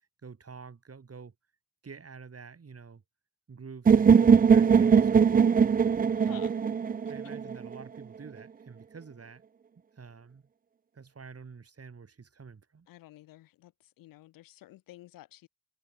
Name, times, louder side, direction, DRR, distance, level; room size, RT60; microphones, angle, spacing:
voice 1, 0.2-1.3 1.8-3.0 3.5-5.7 6.3-6.5 7.1-9.4 9.9-10.4 10.9-12.9, right 5 dB, 45° right, 5.3 m, -48 dB
sound 1, 3.9-7.8, right 6 dB, 25° right, 0.5 m, -21 dB
voice 2, 6.2-6.6 7.2-7.5 12.9-15.5, left 16 dB, 80° left, 6.7 m, -52 dB
hypercardioid pair, 40°, 33 cm